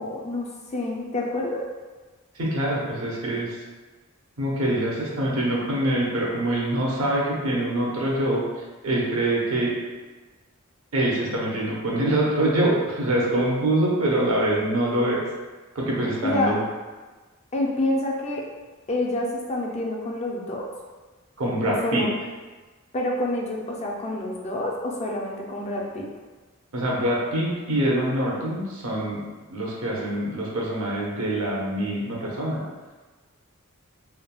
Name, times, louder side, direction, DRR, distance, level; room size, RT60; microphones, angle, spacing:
voice 1, 0.0-1.6 16.2-16.5 17.5-18.4 18.9-20.7 21.6-22.1 22.9-26.1, left 1 dB, 30° left, -1 dB, 0.4 m, -27 dB
voice 2, 2.3-3.6 4.4-9.7 10.9-15.2 15.7-16.6 21.4-22.0 26.7-29.2 29.5-32.6, right 1 dB, 75° right, -4 dB, 0.7 m, -24 dB
3.3 x 2.2 x 2.3 m, 1.3 s
head